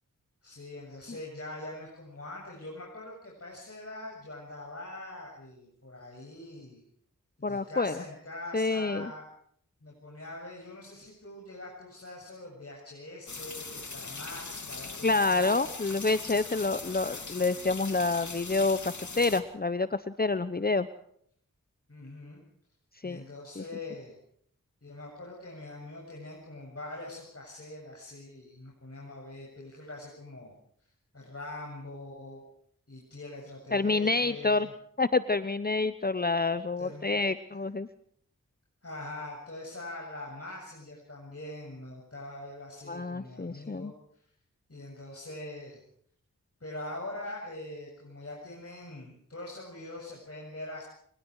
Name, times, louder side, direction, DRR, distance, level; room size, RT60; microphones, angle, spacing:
voice 1, 0.4-6.8 7.4-9.2 9.8-15.5 21.9-22.4 23.0-24.2 24.8-30.5 31.1-32.4 32.9-34.7 36.8-37.1 38.8-44.2 44.7-45.8 46.6-50.8, left 2 dB, 45° left, -2 dB, 7.5 m, -43 dB
voice 2, 7.4-8.0 8.5-9.1 15.0-20.9 23.0-23.2 23.6-23.7 33.7-34.7 35.0-37.9 42.9-43.9, left 3 dB, 30° left, 13 dB, 1.0 m, -28 dB
sound 1, 13.3-19.4, left 4 dB, 60° left, 2.9 m, -40 dB
27.5 x 20.0 x 4.9 m, 0.64 s
cardioid pair, 45°, 33 cm